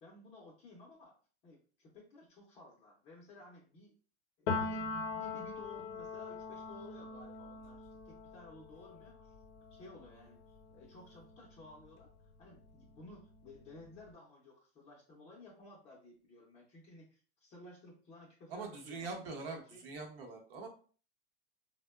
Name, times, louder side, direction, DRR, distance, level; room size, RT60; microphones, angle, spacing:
voice 1, 0.0-1.1 1.4-3.9 4.4-9.3 9.7-12.1 12.4-19.9, left 2 dB, 20° left, -5 dB, 0.4 m, -55 dB
Piano, 4.5-12.1 12.4-14.0, left 4 dB, 65° left, 0.6 m, -42 dB
voice 2, 18.5-20.7, right 3 dB, 60° right, 3 dB, 0.9 m, -43 dB
3.5 x 2.1 x 2.2 m, 0.41 s
supercardioid pair, 155°, 33 cm